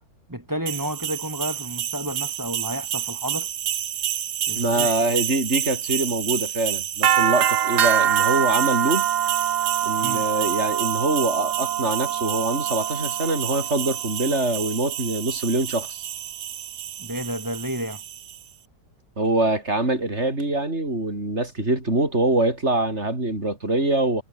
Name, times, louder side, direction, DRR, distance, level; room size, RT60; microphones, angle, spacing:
voice 1, 0.3-3.5 4.5-4.9 10.0-10.3 17.0-18.0, equal, 10° right, 3.2 m, -31 dB
sound 1, 0.7-18.4, right 10 dB, 65° right, 1.6 m, -26 dB
voice 2, 4.6-9.1 9.8-16.0 19.2-24.2, right 2 dB, 35° right, 6.2 m, -24 dB
omnidirectional pair, 2.0 m